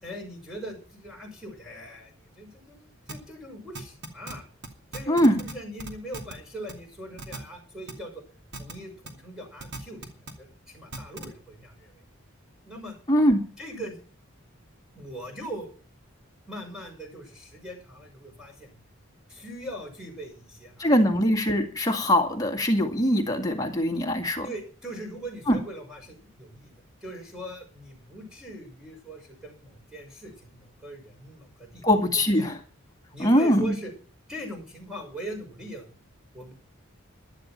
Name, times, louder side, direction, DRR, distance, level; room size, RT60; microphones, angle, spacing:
voice 1, 0.0-4.5 4.9-8.2 8.6-12.0 12.7-13.0 13.6-14.0 14.9-15.7 16.5-18.7 19.3-20.9 24.4-26.7 27.0-31.9 32.4-32.5 33.1-33.9 34.3-35.9 36.3-36.5, right 1 dB, 5° right, 1 dB, 6.0 m, -41 dB
sound 1, 3.1-3.2 3.7-4.3 4.6-4.7 4.9-5.5 5.8-6.3 6.7-6.8 7.2-7.4 7.9-8.0 8.5-8.7 9.0-9.1 9.6-10.3 10.9-11.3, right 2 dB, 55° right, 2.7 m, -37 dB
voice 2, 5.1-5.4 13.1-13.4 20.8-24.5 25.5-25.6 31.8-32.6 33.2-33.7, equal, 15° left, 3 dB, 1.9 m, -22 dB
15.5 x 12.0 x 4.4 m, 0.39 s
head